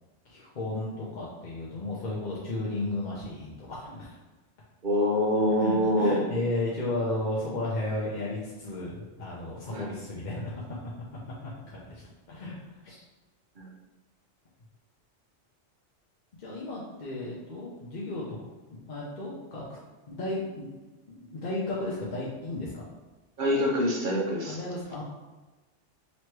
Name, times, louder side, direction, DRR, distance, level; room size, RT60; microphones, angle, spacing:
voice 1, 0.2-4.2 5.6-10.8 11.7-12.0 12.3-12.6 12.8-13.0 16.4-18.4 18.7-19.8 20.1-20.7 21.1-22.9 24.4-25.0, left 2 dB, 45° left, -5 dB, 0.7 m, -34 dB
voice 2, 4.8-6.2 9.7-9.9 13.6-13.7 23.4-24.6, equal, 50° right, -2 dB, 0.8 m, -25 dB
3.1 x 3.0 x 4.5 m, 1.2 s
omnidirectional pair, 1.2 m